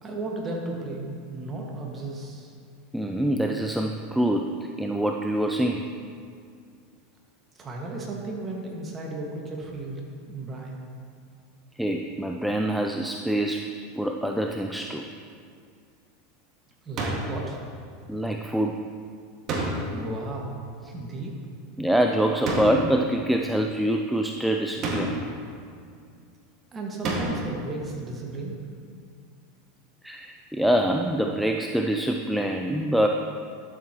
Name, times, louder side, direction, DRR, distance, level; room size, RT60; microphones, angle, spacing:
voice 1, 0.0-2.5 7.5-10.8 16.8-17.6 19.8-20.6 20.8-21.3 26.7-28.6, right 2 dB, 25° right, -1 dB, 1.8 m, -34 dB
voice 2, 2.9-5.8 11.8-13.7 14.0-15.1 18.1-18.8 21.8-25.2 30.0-33.1, right 1 dB, ahead, 2 dB, 0.4 m, -25 dB
sound 1, 17.0-17.4 19.5-20.1 22.4-23.0 24.8-25.4 27.0-27.6, right 1 dB, 40° right, 1.9 m, -29 dB
11.5 x 7.6 x 3.1 m, 2.3 s
hypercardioid pair, 105°, 0 cm